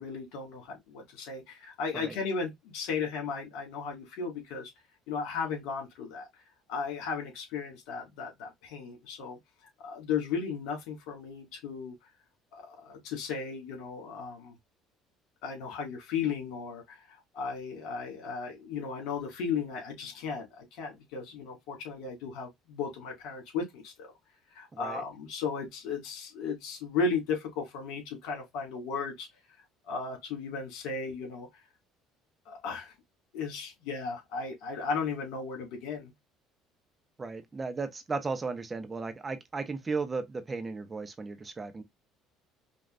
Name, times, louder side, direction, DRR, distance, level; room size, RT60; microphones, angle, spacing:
voice 1, 0.0-4.7 5.1-6.3 6.7-9.4 9.8-12.0 12.5-14.5 15.4-24.1 24.5-29.3 29.9-31.5 32.5-32.9 33.3-36.1, left 5 dB, 80° left, 2.2 m, -35 dB
voice 2, 24.7-25.0 37.2-41.8, right 4 dB, 25° right, 0.7 m, -35 dB
5.2 x 2.4 x 2.5 m
cardioid pair, 110°, 0 cm